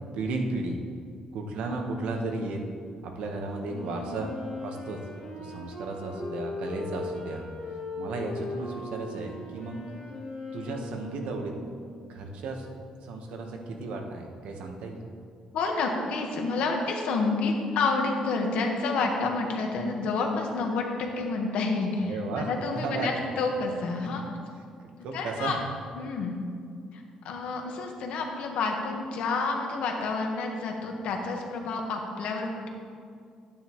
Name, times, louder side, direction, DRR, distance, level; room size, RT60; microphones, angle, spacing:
voice 1, 0.1-0.8 1.3-2.7 3.0-4.3 4.6-5.0 5.4-7.5 7.7-9.9 10.5-11.5 12.1-12.7 13.0-15.1 22.0-22.5 22.7-23.1 25.0-25.6, right 3 dB, 75° right, 2 dB, 1.2 m, -34 dB
Wind instrument woodwind instrument, 3.6-12.2, left 2 dB, 45° left, 2.6 m, -39 dB
voice 2, 15.5-24.3 25.1-25.6 25.9-26.4 26.9-32.7, left 3 dB, 75° left, 2 dB, 1.3 m, -29 dB
11.5 x 9.3 x 3.1 m, 2.2 s
cardioid pair, 165°, 2 cm